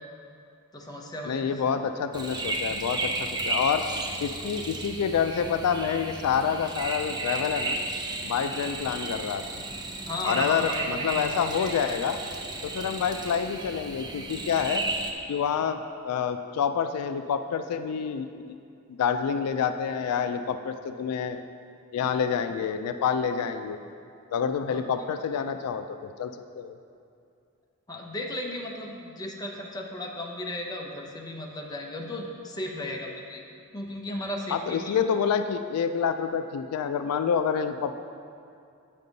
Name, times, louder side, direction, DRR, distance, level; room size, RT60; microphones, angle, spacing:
voice 1, 0.7-1.6 8.4-8.7 10.0-11.3 11.6-11.9 12.8-12.9 24.7-24.8 27.9-33.4 33.7-35.0, left 1 dB, 20° left, -1 dB, 0.7 m, -35 dB
voice 2, 1.2-3.8 4.2-7.8 8.2-9.4 10.2-12.2 12.6-14.8 15.3-15.8 16.0-18.6 18.9-21.4 21.9-23.8 24.3-26.3 26.6-26.7 34.5-38.0, left 7 dB, 85° left, 9 dB, 0.3 m, -28 dB
sound 1, 2.1-15.1, right 2 dB, 20° right, 0.5 m, -33 dB
8.4 x 5.3 x 4.0 m, 2.5 s
head